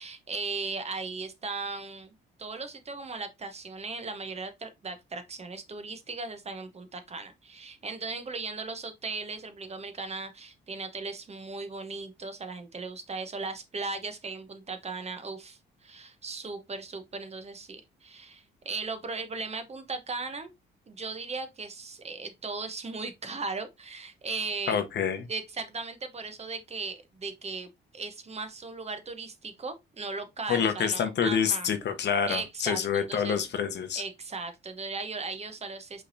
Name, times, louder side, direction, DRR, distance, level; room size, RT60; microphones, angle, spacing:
voice 1, 0.0-2.1 2.4-20.5 20.9-24.8 25.3-31.7 32.3-33.5 34.0-36.0, right 4 dB, 30° right, 0.9 m, -37 dB
voice 2, 24.7-25.3 30.5-34.0, left 7 dB, 60° left, 0.9 m, -27 dB
5.4 x 3.4 x 2.7 m
cardioid pair, 90°, 20 cm